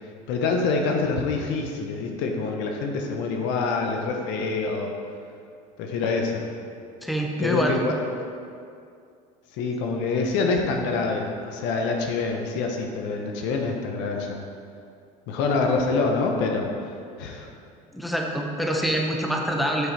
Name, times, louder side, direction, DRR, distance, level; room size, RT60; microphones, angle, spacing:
voice 1, 0.3-4.9 5.8-6.4 7.4-8.0 9.5-14.4 15.3-16.7 17.2-17.5, left 4 dB, 65° left, 2 dB, 1.1 m, -26 dB
voice 2, 7.0-7.8 17.9-19.9, right 1 dB, ahead, 1 dB, 1.0 m, -25 dB
7.9 x 5.8 x 4.2 m, 2.4 s
hypercardioid pair, 80°, 20 cm